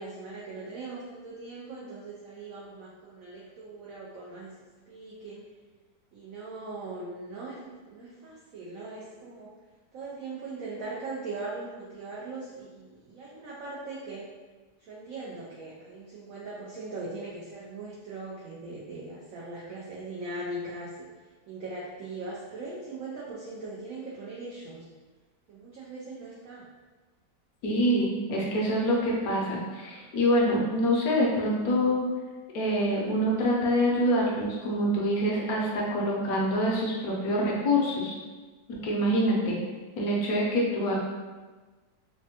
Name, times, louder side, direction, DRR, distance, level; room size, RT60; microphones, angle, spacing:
voice 1, 0.0-4.6 4.9-5.4 6.1-9.5 9.9-14.3 14.8-21.1 21.5-24.8 25.5-26.7, right 2 dB, 80° right, -6 dB, 0.7 m, -40 dB
voice 2, 27.6-32.1 32.5-38.1 38.7-39.6 40.0-40.9, equal, 70° left, -3 dB, 0.9 m, -25 dB
3.4 x 2.1 x 2.7 m, 1.3 s
omnidirectional pair, 2.0 m